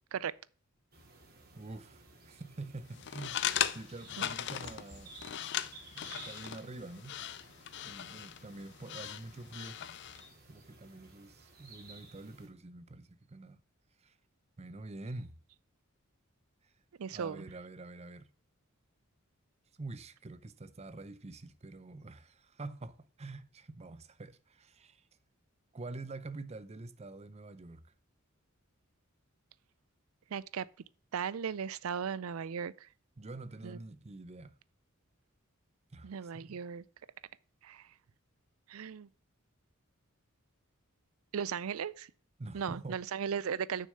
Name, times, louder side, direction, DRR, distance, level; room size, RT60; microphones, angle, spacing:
sound 1, 0.9-12.5, right 3 dB, 45° right, 2.5 m, -55 dB
voice 1, 1.5-5.1 5.9-7.2 7.8-9.8 10.5-13.6 14.0-14.2 14.6-15.4 16.6-16.7 17.1-18.3 19.8-25.0 25.7-27.9 33.2-34.6 35.9-36.6 42.4-43.0, right 2 dB, 30° right, 0.6 m, -46 dB
sound 2, 2.9-10.3, left 10 dB, 55° left, 0.5 m, -38 dB
voice 2, 17.0-17.4 30.3-30.7 31.1-32.7 33.6-33.8 36.0-36.8 37.6-37.8 38.7-39.1 41.3-42.1 42.5-43.9, right 7 dB, 80° right, 0.4 m, -36 dB
6.8 x 6.4 x 6.7 m
head